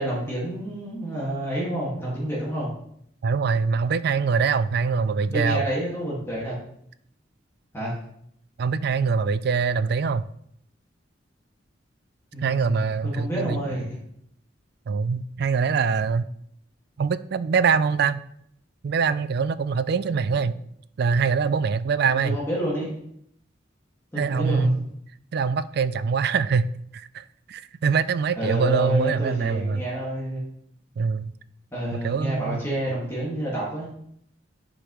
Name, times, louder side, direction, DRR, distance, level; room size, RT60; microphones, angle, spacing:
voice 1, 0.0-2.7 5.3-6.6 7.7-8.0 12.3-14.0 20.3-20.4 22.1-22.9 24.1-24.9 28.4-30.4 31.7-33.9, right 1 dB, 15° left, 1.9 m, -29 dB
voice 2, 3.2-5.6 8.6-10.2 12.4-13.6 14.9-16.3 17.0-18.2 18.8-20.6 21.0-22.4 24.2-24.9 25.3-29.8 31.0-31.3 31.9-32.6, right 5 dB, 55° right, 0.3 m, -24 dB
9.9 x 5.0 x 3.1 m
head